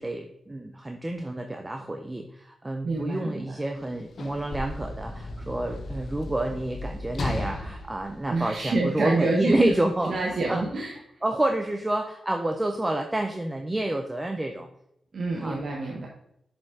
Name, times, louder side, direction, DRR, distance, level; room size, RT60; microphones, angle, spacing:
voice 1, 0.0-10.2 10.5-10.7 11.2-14.7 15.4-15.6, right 1 dB, 15° right, 4 dB, 0.5 m, -29 dB
voice 2, 2.8-3.6 8.3-9.7 10.0-11.0 15.1-16.1, right 2 dB, 50° right, 0 dB, 0.9 m, -27 dB
Sliding door / Slam, 3.7-9.1 10.0-10.2, left 2 dB, 55° left, 0.8 m, -36 dB
7.2 x 5.2 x 3.7 m, 0.79 s
wide cardioid pair, 125°, 0 cm